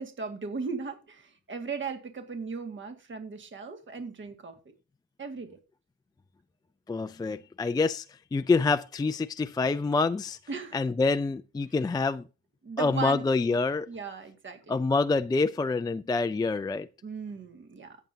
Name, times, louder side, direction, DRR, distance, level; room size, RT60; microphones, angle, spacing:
voice 1, 0.0-4.6 5.2-5.6 10.5-10.8 12.6-13.6 13.9-14.8 17.0-18.0, right 5 dB, 40° right, 2.0 m, -37 dB
voice 2, 6.9-8.0 8.3-10.4 10.7-12.2 12.8-13.9 14.7-16.9, left 3 dB, 15° left, 0.4 m, -26 dB
16.0 x 7.1 x 2.8 m
cardioid pair, 90°, 30 cm